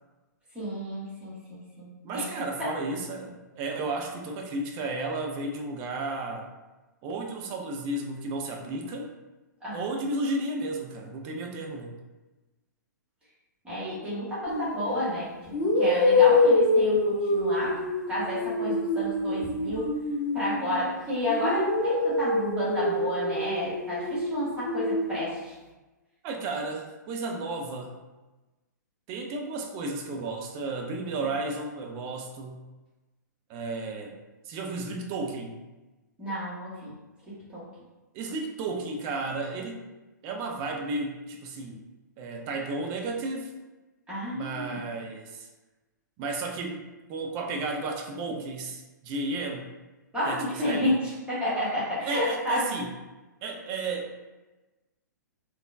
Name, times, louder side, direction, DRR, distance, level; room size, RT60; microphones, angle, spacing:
voice 1, 0.5-1.9 2.1-2.3 2.6-2.7 9.6-9.9 13.6-15.3 15.7-17.8 18.1-19.9 20.3-25.6 36.2-36.9 37.5-37.7 44.1-44.8 50.1-52.7, left 1 dB, 10° right, -9 dB, 1.3 m, -30 dB
voice 2, 2.0-6.5 7.0-9.1 9.7-12.0 26.2-28.0 29.1-32.6 33.5-34.2 34.4-35.6 38.1-39.8 40.2-41.8 42.2-43.5 44.3-45.5 46.2-49.7 50.2-50.9 52.0-52.9 53.4-54.2, right 2 dB, 30° right, 2 dB, 0.4 m, -33 dB
sound 1, 14.5-14.7 15.5-20.9 21.3-25.2, left 2 dB, 25° left, 0.6 m, -25 dB
3.5 x 2.3 x 2.5 m, 1.1 s
figure-of-eight pair, 110°, 10 cm